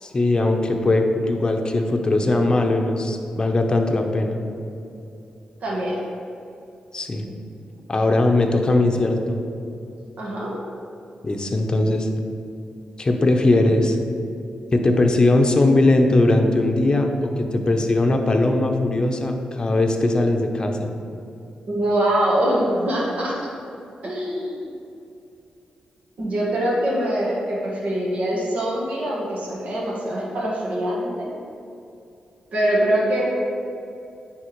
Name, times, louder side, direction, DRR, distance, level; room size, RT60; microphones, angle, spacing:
voice 1, 0.0-4.4 6.9-7.2 7.9-9.4 11.2-12.1 13.0-14.0 14.7-20.9, left 2 dB, 35° left, 3 dB, 0.7 m, -20 dB
voice 2, 5.6-6.0 10.2-10.5 21.7-23.5 24.0-24.6 26.2-31.3 32.5-33.2, right 1 dB, 65° right, -5 dB, 1.5 m, -23 dB
9.6 x 3.5 x 3.1 m, 2.7 s
cardioid pair, 70°, 3 cm